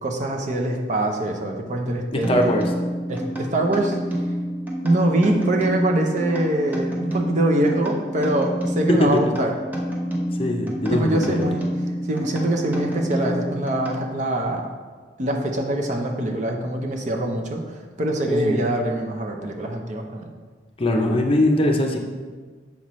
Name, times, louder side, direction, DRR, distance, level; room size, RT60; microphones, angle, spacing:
voice 1, 0.0-2.4 3.1-4.0 4.8-9.5 10.9-11.6 12.0-14.7 15.2-20.2, right 1 dB, 45° right, 2 dB, 0.7 m, -24 dB
voice 2, 2.1-2.6 8.9-9.2 10.4-11.4 18.3-18.6 20.8-22.0, left 1 dB, 30° left, 2 dB, 0.7 m, -21 dB
sound 1, 2.2-14.4, equal, 10° right, 1.0 m, -28 dB
7.3 x 5.7 x 3.1 m, 1.5 s
head